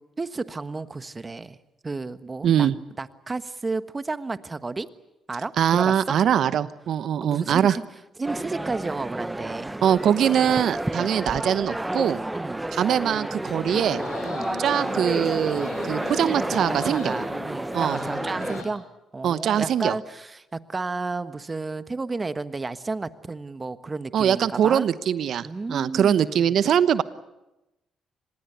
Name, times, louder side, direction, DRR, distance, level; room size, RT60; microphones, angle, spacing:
voice 1, 0.2-1.6 1.8-2.7 3.0-4.9 5.3-6.2 7.2-7.8 8.2-9.8 10.9-11.1 12.3-12.6 14.2-14.5 16.7-18.9 19.1-24.9 25.4-26.6, right 3 dB, 30° right, 12 dB, 1.4 m, -32 dB
voice 2, 2.4-2.8 5.6-7.8 9.8-12.2 12.7-14.0 14.6-17.1 17.7-18.0 19.2-20.0 24.1-27.0, right 9 dB, 65° right, 15 dB, 1.0 m, -22 dB
sound 1, 8.2-18.6, right 1 dB, 15° right, 0.8 m, -30 dB
sound 2, 13.4-18.7, left 5 dB, 90° left, 5.1 m, -39 dB
25.5 x 20.5 x 8.3 m, 0.96 s
supercardioid pair, 55°, 0 cm